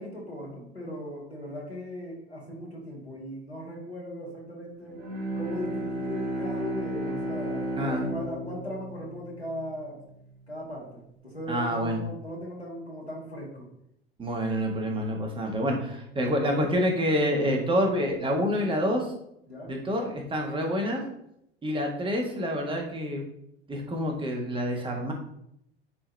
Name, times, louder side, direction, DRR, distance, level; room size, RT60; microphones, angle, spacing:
voice 1, 0.0-5.0 5.3-10.0 10.5-13.7 19.5-19.7, equal, 90° left, -3 dB, 2.2 m, -38 dB
Bowed string instrument, 4.9-10.2, right 1 dB, 55° right, 1.9 m, -33 dB
voice 2, 11.5-12.0 14.2-19.1 19.7-21.0 21.6-23.3 23.7-25.1, equal, 15° right, 1 dB, 1.6 m, -27 dB
9.9 x 3.7 x 3.4 m, 0.76 s
figure-of-eight pair, 80°, 31 cm